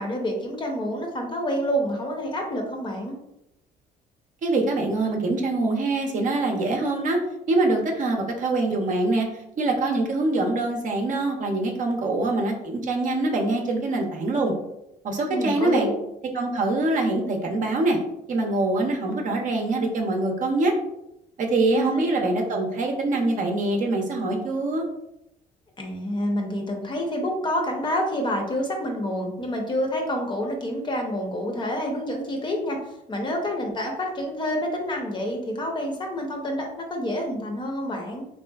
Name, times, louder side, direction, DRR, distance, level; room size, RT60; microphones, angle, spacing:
voice 1, 0.0-3.2 15.3-16.0 21.7-22.1 25.8-32.8 33.1-38.3, equal, 25° left, 2 dB, 0.6 m, -28 dB
voice 2, 4.4-7.2 7.5-9.3 9.6-14.5 15.0-15.9 16.3-18.0 18.3-20.7 21.4-24.8, right 2 dB, 50° right, 2 dB, 0.6 m, -24 dB
3.3 x 2.7 x 2.3 m, 0.85 s
cardioid pair, 110°, 17 cm